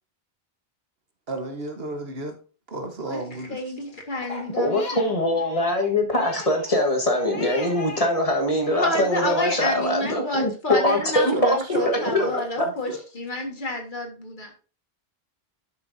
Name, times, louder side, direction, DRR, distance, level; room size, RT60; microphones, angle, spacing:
voice 1, 1.3-2.3 2.7-3.6 11.3-13.0, right 2 dB, 70° right, 1.5 m, -33 dB
voice 2, 3.5-5.1 8.8-14.5, left 2 dB, 50° left, 1.9 m, -29 dB
Crying sobbing, 4.2-8.1 8.5-9.5, left 3 dB, 70° left, 1.8 m, -40 dB
voice 3, 4.6-11.6 11.8-12.3, left 1 dB, 35° left, 1.7 m, -22 dB
10.5 x 6.3 x 2.7 m
omnidirectional pair, 1.1 m